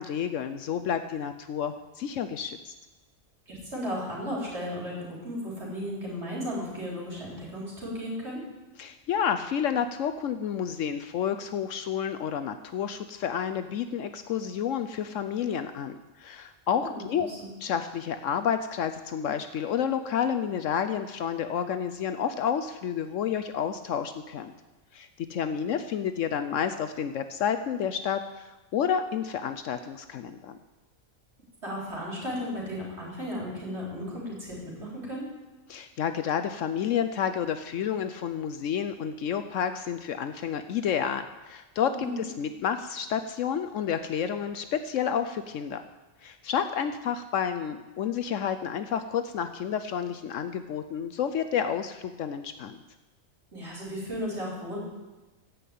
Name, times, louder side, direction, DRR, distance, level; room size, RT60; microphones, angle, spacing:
voice 1, 0.0-2.7 8.8-17.3 17.6-24.5 24.9-30.6 35.7-45.8 46.2-52.8, left 8 dB, 70° left, 9 dB, 1.0 m, -30 dB
voice 2, 3.5-8.4 16.8-17.5 31.6-35.3 41.9-42.3 53.5-54.8, equal, 55° right, -4 dB, 4.2 m, -35 dB
15.5 x 5.5 x 8.5 m, 1.2 s
omnidirectional pair, 1.4 m